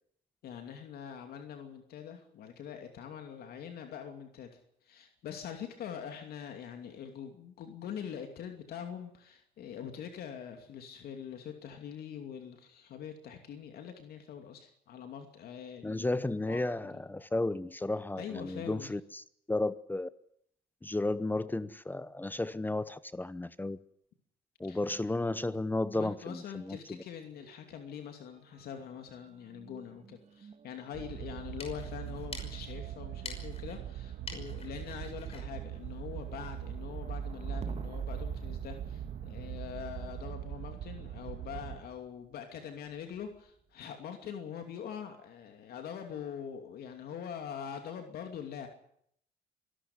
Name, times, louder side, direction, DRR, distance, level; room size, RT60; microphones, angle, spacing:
voice 1, 0.4-4.5 4.8-16.2 16.5-17.0 18.2-18.9 24.7-24.8 25.9-48.7, left 8 dB, 65° left, 5 dB, 2.6 m, -44 dB
voice 2, 15.8-19.2 19.5-20.1 20.8-23.8 24.6-27.0, left 2 dB, 10° left, 16 dB, 0.8 m, -33 dB
sound 1, 25.5-26.9 27.1-42.2 42.9-43.5, right 6 dB, 40° right, 2.1 m, -46 dB
sound 2, 30.9-41.8, right 11 dB, 65° right, 1.9 m, -42 dB
sound 3, 31.3-36.6, left 4 dB, 35° left, 5.8 m, -49 dB
25.0 x 12.5 x 9.6 m, 0.71 s
cardioid pair, 110°, 17 cm